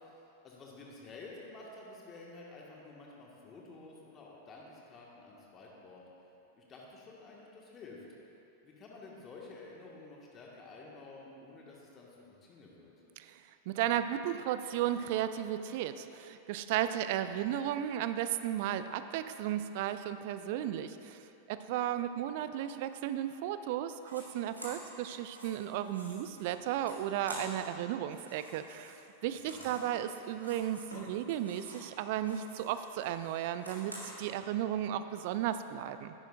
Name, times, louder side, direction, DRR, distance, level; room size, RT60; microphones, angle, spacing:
voice 1, 0.0-6.0 6.5-8.0 8.6-12.9 29.5-29.8, left 3 dB, 25° left, -3 dB, 1.7 m, -51 dB
voice 2, 13.2-21.2 21.5-29.0 29.2-36.1, right 11 dB, 50° right, 11 dB, 0.4 m, -34 dB
sound 1, 24.0-24.2 24.5-27.8 28.0-31.9 32.2-34.3, equal, 85° right, 1.8 m, -49 dB
10.5 x 9.8 x 2.5 m, 2.9 s
figure-of-eight pair, 90°, 0 cm